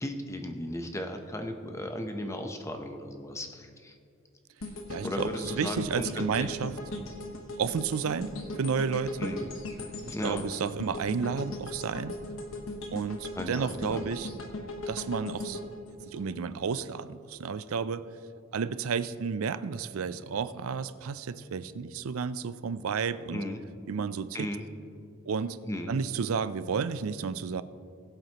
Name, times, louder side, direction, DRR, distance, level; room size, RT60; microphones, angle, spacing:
voice 1, 0.0-4.0 5.0-6.1 6.4-6.6 9.2-9.5 10.1-10.4 13.3-14.1 23.3-23.6 24.3-24.7 25.7-26.0, left 1 dB, 15° left, 5 dB, 0.8 m, -36 dB
sound 1, 4.6-16.8 17.2-17.4, left 2 dB, 70° left, 1.2 m, -39 dB
voice 2, 4.9-6.7 7.6-8.3 8.6-9.4 10.0-12.2 12.9-14.3 14.9-15.6 16.1-18.1 18.5-23.4 23.9-24.5 25.3-25.6 25.9-27.6, right 6 dB, 85° right, 15 dB, 0.4 m, -31 dB
21.0 x 7.9 x 3.0 m, 2.4 s
head